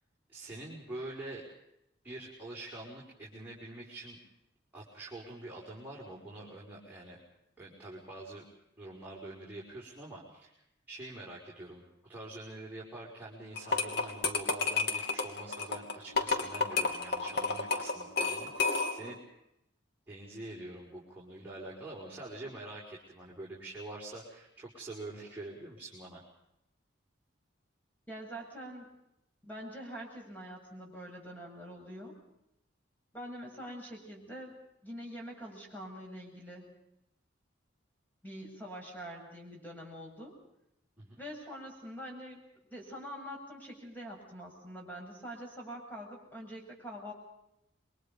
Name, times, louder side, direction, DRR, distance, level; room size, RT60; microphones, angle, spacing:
voice 1, 0.3-1.4 2.0-4.2 4.7-7.2 7.6-8.4 8.8-10.5 10.9-11.8 12.1-19.2 20.1-26.2 41.0-41.2, right 2 dB, 10° right, -5 dB, 5.8 m, -45 dB
sound 1, 13.6-19.1, left 4 dB, 55° left, 3.1 m, -31 dB
voice 2, 28.1-29.0 29.4-32.2 33.1-34.6 34.8-36.7 38.2-40.3 41.1-42.5 42.7-47.1, equal, 10° left, -1 dB, 7.7 m, -45 dB
28.5 x 24.0 x 5.4 m, 0.83 s
head